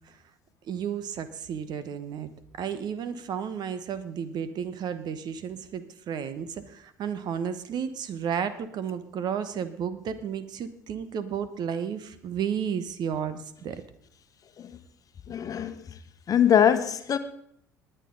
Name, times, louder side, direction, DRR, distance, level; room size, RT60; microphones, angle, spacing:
voice 1, 0.6-13.8, right 7 dB, 50° right, 1.1 m, -33 dB
voice 2, 15.3-15.8 16.3-17.2, left 9 dB, 40° left, 1.1 m, -22 dB
19.5 x 9.1 x 3.9 m
hypercardioid pair, 60°, 9 cm